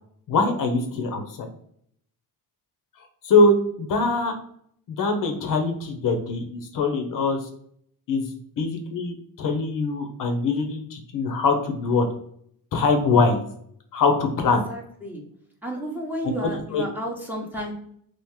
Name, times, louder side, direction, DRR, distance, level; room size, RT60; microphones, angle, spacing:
voice 1, 0.3-1.5 3.2-4.3 4.9-7.4 8.1-8.2 8.6-12.1 12.7-13.4 13.9-14.6 16.7-16.8, left 3 dB, 55° left, 5 dB, 0.7 m, -22 dB
voice 2, 14.4-15.3 15.6-17.7, right 1 dB, 5° right, -2 dB, 0.8 m, -32 dB
3.0 x 2.5 x 3.5 m, 0.67 s
cardioid pair, 120°, 40 cm